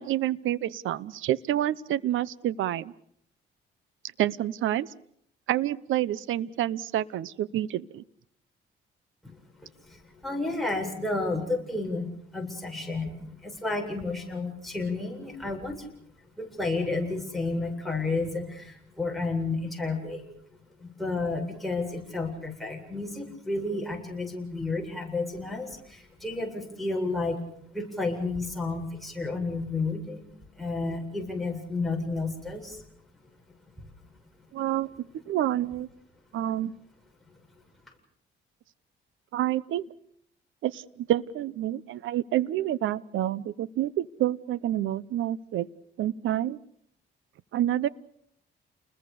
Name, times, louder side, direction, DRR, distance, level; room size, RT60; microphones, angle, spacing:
voice 1, 0.0-2.9 4.2-4.9 5.5-8.0 34.5-35.9 36.3-36.7 39.3-39.9 40.6-45.7 46.0-46.6 47.5-47.9, right 13 dB, 80° right, 20 dB, 0.9 m, -28 dB
voice 2, 9.2-15.9 16.4-20.3 20.8-27.4 27.7-30.2 30.6-32.9, left 3 dB, ahead, 1 dB, 7.7 m, -31 dB
30.0 x 21.0 x 7.0 m, 0.68 s
cardioid pair, 90°, 20 cm